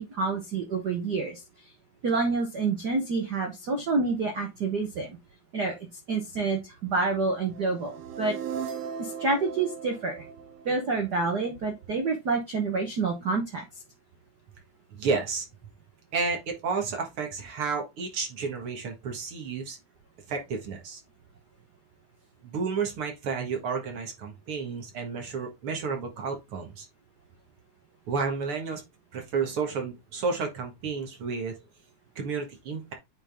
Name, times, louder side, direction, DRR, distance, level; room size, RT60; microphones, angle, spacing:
voice 1, 0.0-1.4 2.0-5.2 5.5-5.7 6.1-8.3 9.0-10.2 10.6-13.6, right 3 dB, 70° right, 0.9 m, -28 dB
sound 1, 7.5-11.6, right 7 dB, 90° right, 2.5 m, -38 dB
voice 2, 14.9-15.5 16.1-19.8 20.3-21.0 22.4-26.9 28.1-28.8 29.1-31.6 32.2-32.9, right 5 dB, 50° right, 2.1 m, -31 dB
8.8 x 3.8 x 3.5 m
omnidirectional pair, 3.5 m